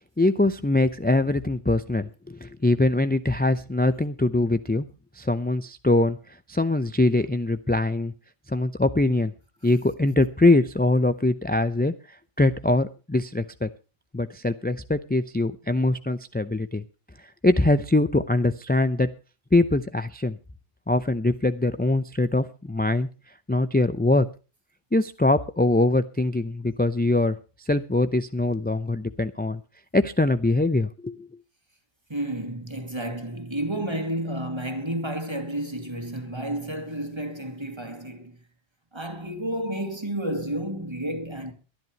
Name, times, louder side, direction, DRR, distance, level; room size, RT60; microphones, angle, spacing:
voice 1, 0.2-4.8 5.2-8.1 8.5-9.3 9.6-13.7 14.1-16.8 17.4-19.1 19.5-20.4 20.9-23.1 23.5-24.3 24.9-27.4 27.7-29.6 29.9-31.3, left 2 dB, 15° left, 0.4 m, -23 dB
voice 2, 32.1-38.4 38.9-41.5, right 1 dB, 25° right, 2.3 m, -31 dB
22.5 x 11.0 x 3.0 m
omnidirectional pair, 1.2 m